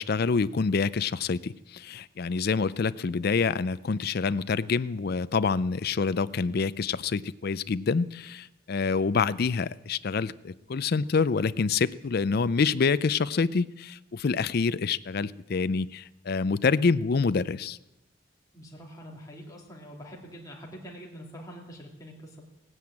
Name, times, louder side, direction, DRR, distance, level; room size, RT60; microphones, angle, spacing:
voice 1, 0.0-17.8, left 4 dB, 50° left, 16 dB, 0.4 m, -27 dB
voice 2, 18.5-22.5, equal, 15° left, -2 dB, 2.8 m, -45 dB
17.0 x 9.6 x 8.7 m, 0.95 s
head